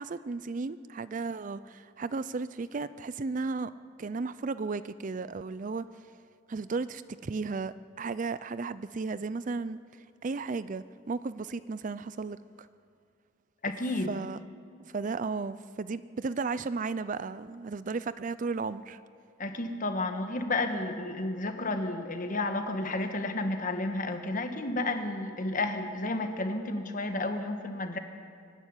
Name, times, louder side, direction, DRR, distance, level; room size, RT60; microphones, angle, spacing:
voice 1, 0.0-3.7 4.0-5.8 6.5-9.8 10.2-12.7 14.1-14.4 14.9-19.0, right 4 dB, 40° right, 15 dB, 0.4 m, -34 dB
voice 2, 13.6-14.1 19.4-28.0, left 2 dB, 40° left, 6 dB, 1.6 m, -31 dB
24.0 x 11.0 x 9.8 m, 2.2 s
head